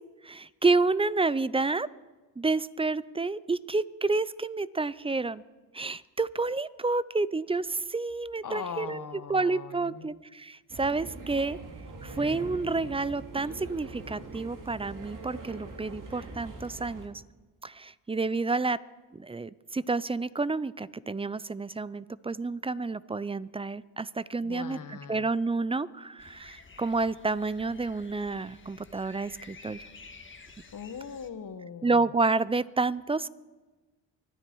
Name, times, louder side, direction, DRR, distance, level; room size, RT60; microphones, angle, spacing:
voice 1, 0.2-1.9 2.4-5.4 5.7-11.6 12.0-17.2 17.6-18.8 19.1-29.8 31.8-33.3, right 3 dB, 15° right, 19 dB, 0.4 m, -29 dB
voice 2, 8.4-10.1 24.4-25.3 30.7-32.0, left 6 dB, 45° left, 10 dB, 1.5 m, -40 dB
sound 1, 10.7-17.1, right 2 dB, 50° right, 2.5 m, -43 dB
sound 2, 26.2-31.3, left 4 dB, 30° left, 1.5 m, -51 dB
24.5 x 9.9 x 4.6 m, 1.2 s
cardioid pair, 70°, 42 cm